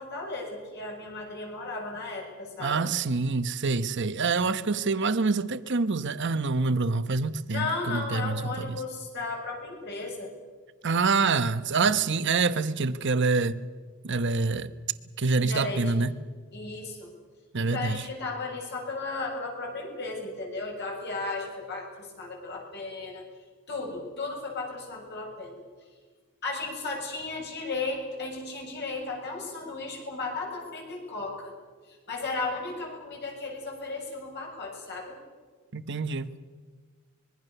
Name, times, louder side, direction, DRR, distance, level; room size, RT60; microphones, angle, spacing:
voice 1, 0.0-2.8 7.5-10.3 15.4-16.0 16.5-17.1 17.6-23.2 23.7-25.6 26.4-31.5 31.9-35.2, left 3 dB, 55° left, 7.2 m, -35 dB
voice 2, 2.6-8.8 10.8-13.6 14.0-14.7 15.2-16.1 17.5-18.0 35.7-36.3, right 4 dB, 60° right, 1.0 m, -26 dB
25.0 x 22.5 x 6.8 m
head